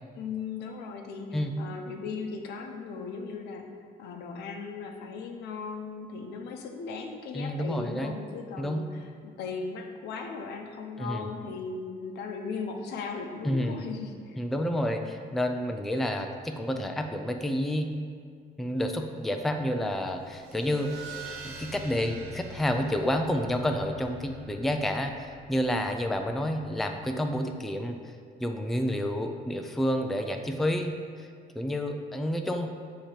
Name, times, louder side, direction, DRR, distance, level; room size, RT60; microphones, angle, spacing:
voice 1, 0.2-14.4, left 5 dB, 75° left, 4 dB, 0.7 m, -37 dB
voice 2, 7.3-8.1 8.6-8.8 11.0-11.3 13.4-13.8 14.4-17.9 18.6-21.0 21.4-28.0 28.4-30.9 31.2-31.3 31.5-32.7, equal, ahead, 4 dB, 0.3 m, -29 dB
sound 1, 20.1-27.2, right 2 dB, 85° right, 0.9 m, -46 dB
7.2 x 2.9 x 5.1 m, 2.1 s
cardioid pair, 110°, 17 cm